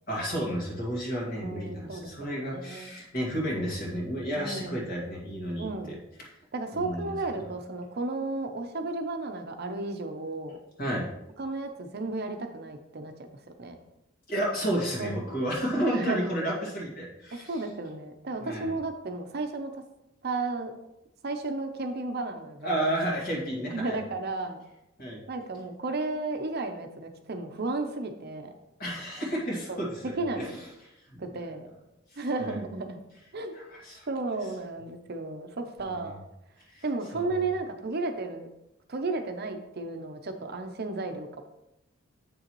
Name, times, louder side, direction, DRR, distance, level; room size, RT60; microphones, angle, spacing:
voice 1, 0.1-6.0 6.7-7.1 10.8-11.1 14.3-17.6 18.4-18.8 22.6-24.0 25.0-25.2 28.8-30.0 30.4-30.5 31.1-31.2 32.1-32.6 33.5-34.1 35.9-36.2 36.7-36.8 37.1-37.5, equal, 45° left, -3 dB, 2.1 m, -31 dB
voice 2, 1.3-2.9 4.3-4.8 5.6-6.0 6.5-10.6 11.4-13.3 13.6-13.8 15.0-15.4 15.9-16.2 17.3-19.8 20.2-20.7 21.2-22.8 23.7-24.6 25.3-28.5 29.7-30.5 31.2-31.7 32.2-33.0 33.3-33.6 34.1-36.2 36.8-38.5 38.9-41.4, right 3 dB, 50° right, 6 dB, 0.7 m, -33 dB
8.0 x 6.5 x 3.1 m, 0.87 s
head